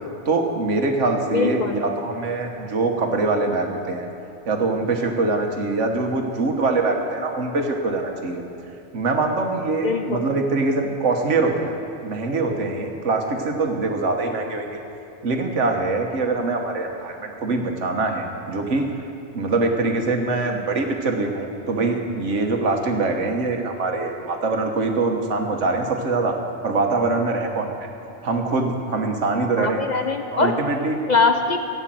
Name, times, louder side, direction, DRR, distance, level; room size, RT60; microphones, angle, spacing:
voice 1, 0.2-4.1 4.5-8.4 8.9-11.7 12.0-14.8 15.2-18.9 19.3-26.4 26.6-27.9 28.2-29.8 30.3-31.0, right 3 dB, 80° right, 3 dB, 1.6 m, -23 dB
voice 2, 1.3-1.8 9.8-10.2 29.6-30.5 31.1-31.7, left 4 dB, 45° left, 5 dB, 0.6 m, -21 dB
13.0 x 8.9 x 7.6 m, 2.7 s
omnidirectional pair, 1.2 m